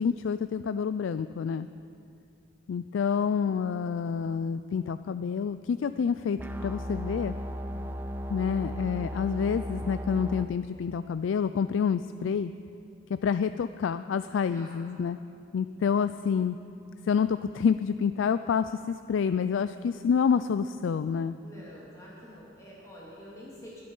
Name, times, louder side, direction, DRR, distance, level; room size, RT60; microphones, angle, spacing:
voice 1, 0.0-1.7 2.7-7.4 8.3-12.5 13.1-15.2 15.5-16.6 17.0-21.4, left 6 dB, 90° left, 12 dB, 0.3 m, -28 dB
sound 1, 6.4-10.4, equal, 10° right, 0.5 m, -36 dB
voice 2, 21.4-23.8, equal, 15° left, -6 dB, 2.6 m, -47 dB
22.5 x 8.6 x 5.5 m, 2.6 s
head